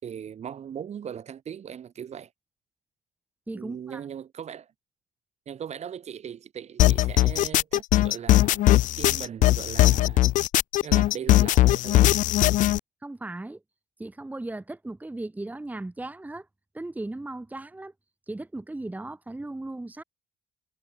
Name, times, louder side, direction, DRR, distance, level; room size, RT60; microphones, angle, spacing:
voice 1, 0.0-2.3 3.5-4.7 5.5-8.6 9.0-10.2 10.8-12.1, right 8 dB, 55° right, 4.8 m, -39 dB
voice 2, 3.5-4.0 13.0-13.6 14.0-16.5 16.7-17.9 18.3-20.0, right 2 dB, 10° right, 1.7 m, -37 dB
sound 1, 6.8-12.8, left 15 dB, 70° left, 0.4 m, -20 dB
cardioid pair, 95°, 14 cm